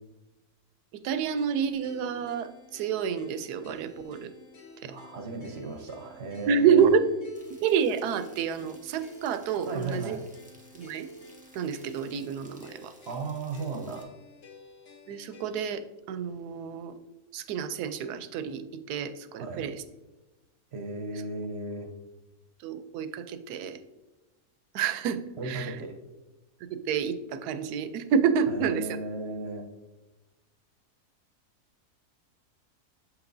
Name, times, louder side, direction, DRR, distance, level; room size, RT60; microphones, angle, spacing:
voice 1, 0.9-4.3 4.8-4.9 6.4-7.1 7.6-10.2 10.7-11.1 11.5-12.9 15.1-16.9 17.3-19.8 21.1-21.2 22.6-23.8 24.7-25.8 26.7-29.0, right 7 dB, 80° right, 11 dB, 1.1 m, -28 dB
sound 1, 1.4-15.8, left 1 dB, 55° left, 1.3 m, -51 dB
voice 2, 4.8-6.9 9.7-10.3 13.1-14.1 19.3-19.7 20.7-21.9 25.4-26.0 28.5-29.7, right 3 dB, 55° right, 4 dB, 0.8 m, -36 dB
Rain, 7.3-14.0, right 1 dB, 10° right, 0.4 m, -57 dB
7.6 x 5.9 x 2.6 m, 1.1 s
omnidirectional pair, 1.7 m